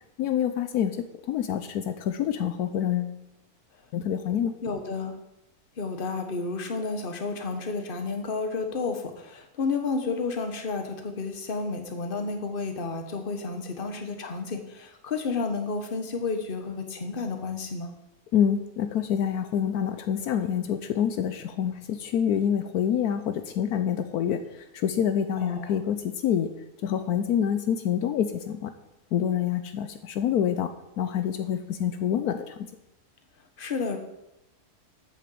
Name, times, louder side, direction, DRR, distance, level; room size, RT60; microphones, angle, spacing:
voice 1, 0.2-1.0 1.3-3.2 3.9-4.5 18.3-26.5 26.8-28.7 29.1-30.7 31.0-32.6, left 9 dB, 75° left, 9 dB, 1.1 m, -27 dB
voice 2, 4.6-5.1 5.8-17.9 25.4-25.8 33.6-34.0, left 4 dB, 35° left, 6 dB, 1.3 m, -31 dB
8.4 x 6.8 x 7.7 m, 0.89 s
omnidirectional pair, 1.7 m